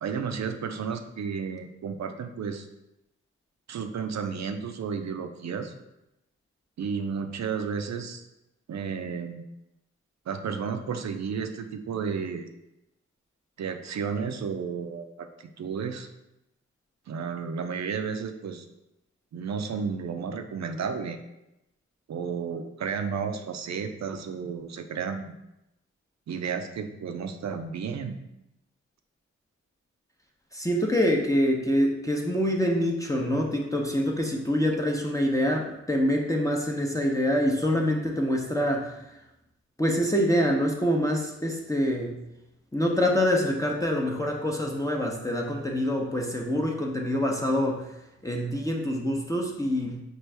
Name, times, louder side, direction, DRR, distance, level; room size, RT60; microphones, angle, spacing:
voice 1, 0.0-2.7 3.7-5.7 6.8-8.2 8.7-9.4 10.3-12.5 13.6-16.1 17.1-18.6 19.3-21.2 22.1-25.3 26.3-28.2, right 6 dB, 65° right, 7 dB, 0.5 m, -32 dB
voice 2, 30.5-39.1 39.8-42.2 42.7-47.9 48.2-50.0, equal, 10° left, -1 dB, 0.7 m, -25 dB
4.5 x 2.5 x 3.3 m, 0.90 s
cardioid pair, 45°, 30 cm